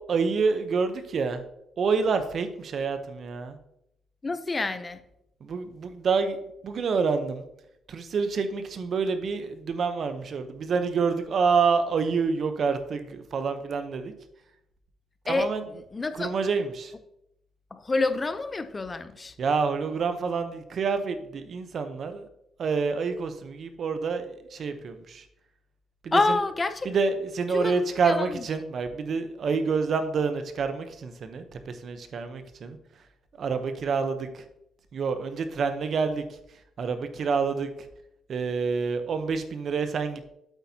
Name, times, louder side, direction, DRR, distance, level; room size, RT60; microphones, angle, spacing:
voice 1, 0.0-1.4 1.8-3.6 5.4-7.4 7.9-14.1 15.2-15.6 16.2-16.9 19.4-22.2 22.6-25.2 26.0-26.4 26.8-32.8 33.4-34.4 34.9-36.2 36.8-37.7 38.3-40.3, right 5 dB, 55° right, 0.8 m, -27 dB
voice 2, 4.2-5.0 15.3-16.3 17.7-19.3 26.1-26.9 27.5-28.5, left 3 dB, 25° left, 0.6 m, -28 dB
8.1 x 8.1 x 2.8 m
cardioid pair, 90°, 0 cm